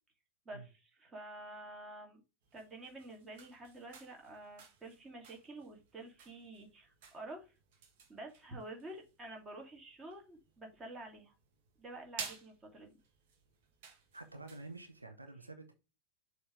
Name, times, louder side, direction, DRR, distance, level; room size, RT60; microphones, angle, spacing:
voice 1, 0.5-2.2 2.5-7.6 8.1-11.3 11.8-13.0, right 2 dB, 20° right, 2 dB, 2.4 m, -49 dB
sound 1, 2.4-15.0, right 6 dB, 50° right, 1.7 m, -54 dB
voice 2, 14.1-15.7, right 3 dB, 80° right, 5 dB, 1.0 m, -49 dB
6.9 x 3.3 x 4.9 m, 0.29 s
figure-of-eight pair, 90°, 0 cm